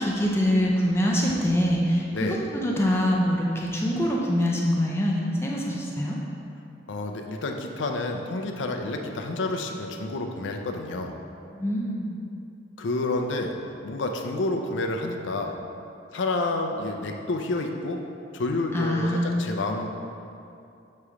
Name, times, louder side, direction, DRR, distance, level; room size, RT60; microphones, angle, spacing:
voice 1, 0.0-6.2 11.5-12.2 18.7-19.4, equal, 15° left, -3 dB, 0.5 m, -24 dB
voice 2, 2.1-2.5 6.9-11.1 12.8-13.5 13.8-15.5 16.1-18.0 18.3-19.9, left 2 dB, 75° left, 3 dB, 0.5 m, -29 dB
6.7 x 3.2 x 4.9 m, 2.6 s
head